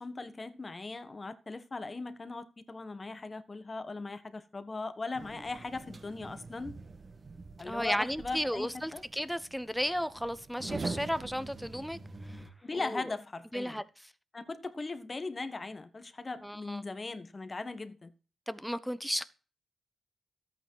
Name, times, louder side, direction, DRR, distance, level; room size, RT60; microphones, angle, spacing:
voice 1, 0.0-6.8 7.6-9.0 12.6-13.8 14.3-18.1, left 3 dB, 40° left, 1.5 m, -39 dB
sound 1, 5.1-12.5, right 3 dB, 45° right, 2.0 m, -44 dB
voice 2, 7.6-12.0 12.7-13.0 13.5-13.8 16.4-16.8 18.5-19.2, equal, ahead, 1.1 m, -34 dB
13.0 x 8.9 x 4.8 m
supercardioid pair, 50°, 0 cm